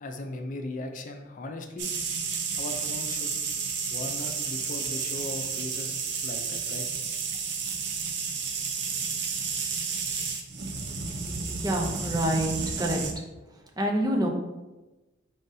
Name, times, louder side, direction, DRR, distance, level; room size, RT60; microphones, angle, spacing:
voice 1, 0.0-1.9 2.5-3.3 3.9-6.8, left 2 dB, 45° left, 5 dB, 0.5 m, -38 dB
sound 1, 1.8-13.1, right 5 dB, 60° right, 0.6 m, -31 dB
voice 2, 11.6-12.5 12.8-13.2 13.8-14.3, right 1 dB, 20° right, 1 dB, 0.6 m, -27 dB
5.0 x 3.9 x 2.7 m, 1.1 s
head